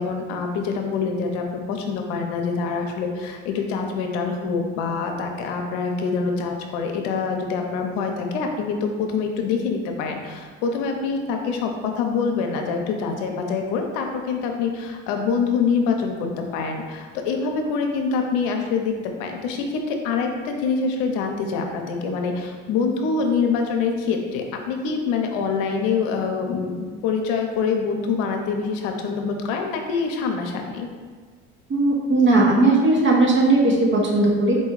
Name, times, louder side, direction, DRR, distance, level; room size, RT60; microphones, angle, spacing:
voice 1, 0.0-30.9, left 5 dB, 75° left, 3 dB, 0.7 m, -25 dB
voice 2, 31.7-34.6, right 2 dB, 40° right, -2 dB, 1.1 m, -17 dB
4.3 x 2.3 x 4.6 m, 1.5 s
supercardioid pair, 95°, 31 cm